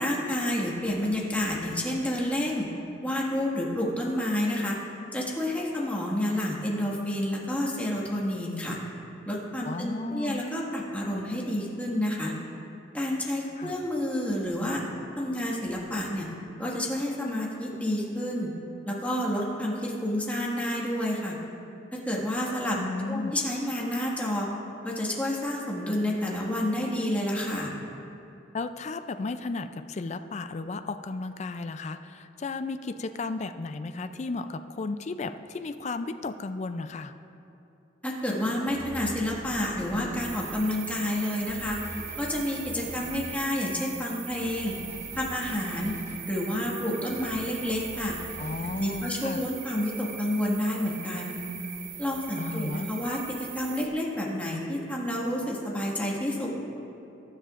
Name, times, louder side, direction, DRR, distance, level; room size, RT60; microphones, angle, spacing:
voice 1, 0.0-2.7 3.0-4.8 5.1-8.8 9.3-12.3 12.9-14.8 15.2-16.3 16.6-18.5 18.9-21.4 22.1-22.8 23.1-24.5 24.8-27.7 38.0-41.8 42.2-44.7 45.2-45.9 46.3-48.2 48.6-51.4 52.0-56.5, left 1 dB, 10° left, -4 dB, 1.7 m, -29 dB
voice 2, 9.7-10.4 13.6-13.7 22.8-23.3 28.5-37.1 48.4-49.4 52.4-52.9, left 3 dB, 35° left, 9 dB, 0.4 m, -34 dB
sound 1, 38.7-40.6 41.5-43.4 44.3-46.2 47.1-49.0, equal, 15° right, 1.7 m, -44 dB
sound 2, 40.2-53.9, right 8 dB, 45° right, 0.8 m, -40 dB
22.0 x 10.0 x 2.5 m, 2.9 s
head